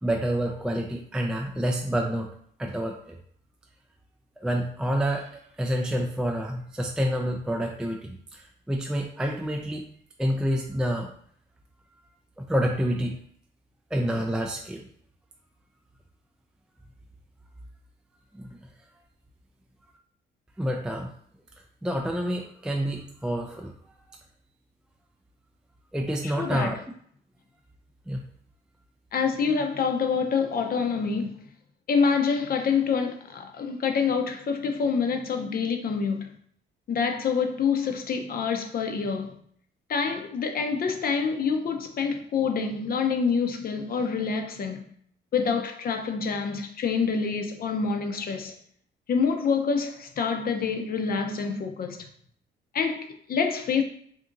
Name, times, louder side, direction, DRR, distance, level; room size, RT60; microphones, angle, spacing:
voice 1, 0.0-2.3 2.6-3.2 4.4-9.8 10.2-11.1 12.4-13.2 13.9-14.9 18.4-18.6 20.6-21.1 21.8-23.7 25.9-26.8 28.1-28.3, equal, 5° right, 0.3 m, -28 dB
voice 2, 26.2-26.7 29.1-31.4 31.9-36.3 36.9-39.4 39.9-44.9 45.3-48.6 49.1-52.1 52.7-53.8, left 5 dB, 50° left, 0.6 m, -26 dB
2.7 x 2.6 x 3.7 m
cardioid pair, 90°, 20 cm